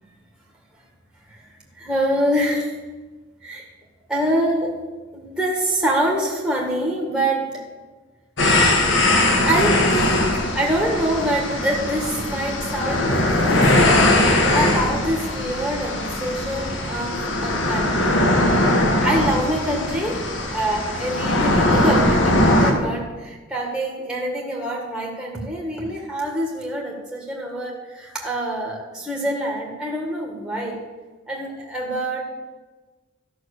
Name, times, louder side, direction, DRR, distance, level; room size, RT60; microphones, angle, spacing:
voice 1, 1.7-2.7 3.4-3.7 4.1-4.8 5.1-7.6 9.5-18.4 19.0-30.8 31.3-32.2, right 1 dB, 5° right, -3 dB, 1.9 m, -25 dB
sound 1, 8.4-22.7, left 1 dB, 60° left, 1.5 m, -20 dB
13.5 x 6.3 x 6.7 m, 1.3 s
head